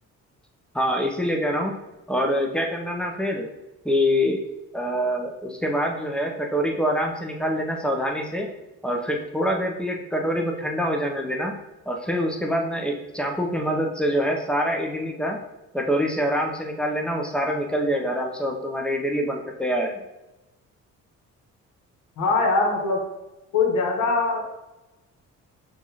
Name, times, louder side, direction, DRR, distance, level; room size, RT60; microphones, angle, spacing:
voice 1, 0.7-1.7 2.1-3.5 3.8-4.4 4.7-8.5 8.8-11.5 11.9-15.4 15.7-20.0, equal, 5° left, 1 dB, 0.6 m, -25 dB
voice 2, 22.2-23.0 23.5-24.4, left 3 dB, 80° left, 1 dB, 1.0 m, -22 dB
5.7 x 2.5 x 2.8 m, 1.0 s
cardioid pair, 90°, 30 cm